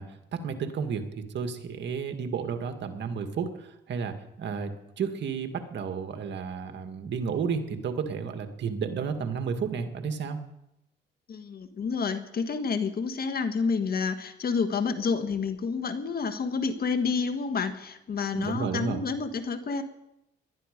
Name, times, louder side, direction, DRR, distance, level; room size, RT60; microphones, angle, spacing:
voice 1, 0.0-10.4 18.3-19.0, right 6 dB, 65° right, 6 dB, 1.8 m, -32 dB
voice 2, 11.3-19.8, left 5 dB, 50° left, 9 dB, 1.6 m, -29 dB
19.5 x 12.0 x 5.2 m, 0.86 s
cardioid pair, 90°, 20 cm